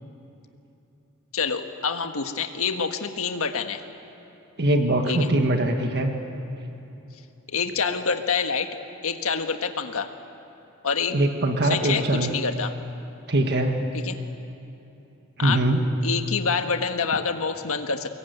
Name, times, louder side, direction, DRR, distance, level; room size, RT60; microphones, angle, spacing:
voice 1, 1.3-3.8 5.1-5.3 7.5-8.7 9.0-10.1 10.8-11.2 11.6-12.7 13.9-14.2 15.4-15.6 16.0-18.1, left 5 dB, 65° left, 6 dB, 1.5 m, -27 dB
voice 2, 4.6-6.1 11.1-12.3 13.3-13.8 15.4-15.8, right 1 dB, 50° right, 4 dB, 1.6 m, -22 dB
24.5 x 21.5 x 9.4 m, 3.0 s
head